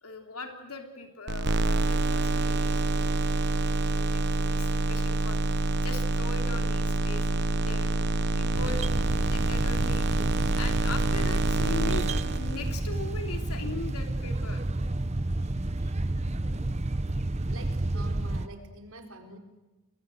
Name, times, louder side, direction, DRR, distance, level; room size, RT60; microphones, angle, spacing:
voice 1, 0.0-3.2 3.9-9.0 9.3-10.2 10.6-14.6 15.4-15.5 15.8-15.9, left 3 dB, 90° left, 4 dB, 3.3 m, -40 dB
sound 1, 1.3-12.9, right 2 dB, 50° right, 1.2 m, -27 dB
sound 2, 8.5-18.5, right 2 dB, 30° right, 0.8 m, -31 dB
voice 2, 16.4-19.4, right 1 dB, 65° right, 5 dB, 4.6 m, -48 dB
29.5 x 22.5 x 7.9 m, 1.1 s
head